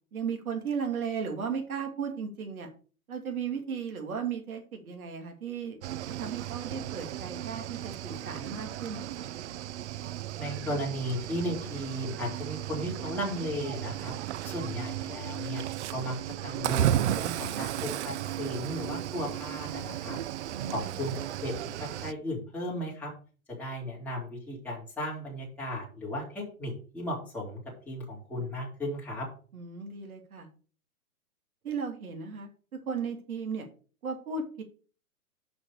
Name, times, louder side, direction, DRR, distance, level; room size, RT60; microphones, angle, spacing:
voice 1, 0.1-2.7 3.1-5.8 6.2-9.2 17.3-17.7 20.5-21.0 29.5-30.5 31.6-32.5 32.9-33.6 34.0-34.6, right 6 dB, 70° right, 3 dB, 2.9 m, -35 dB
Cricket / Waves surf, 5.8-22.1, right 12 dB, 55° right, 0.5 m, -34 dB
voice 2, 10.4-14.1 14.4-15.6 15.9-16.2 16.4-20.2 20.7-23.1 23.5-27.6 27.9-29.3, equal, 5° left, -6 dB, 3.6 m, -35 dB
6.4 x 5.9 x 6.8 m, 0.39 s
hypercardioid pair, 130°, 44 cm